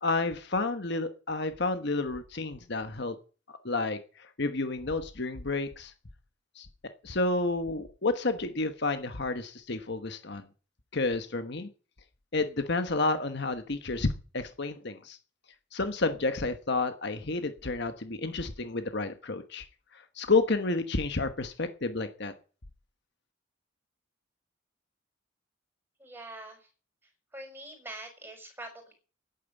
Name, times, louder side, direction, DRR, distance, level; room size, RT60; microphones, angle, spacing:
voice 1, 0.0-3.1 3.5-5.9 6.6-6.7 7.0-10.5 10.9-11.7 12.3-15.2 15.7-19.6 19.9-22.3, left 3 dB, 55° left, 9 dB, 1.2 m, -30 dB
voice 2, 26.0-26.7 27.3-28.9, right 2 dB, 10° right, 2 dB, 5.8 m, -44 dB
10.5 x 9.4 x 9.0 m, 0.37 s
head